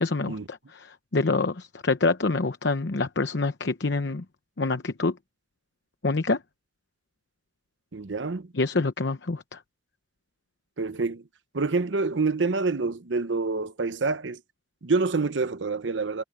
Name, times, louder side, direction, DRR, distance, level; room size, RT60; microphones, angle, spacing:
voice 1, 0.0-4.2 4.6-5.2 6.0-6.4 8.5-9.6, left 3 dB, 70° left, 0.9 m, -26 dB
voice 2, 7.9-8.5 10.8-11.2 11.5-14.4 14.8-16.2, right 3 dB, 90° right, 0.8 m, -27 dB
head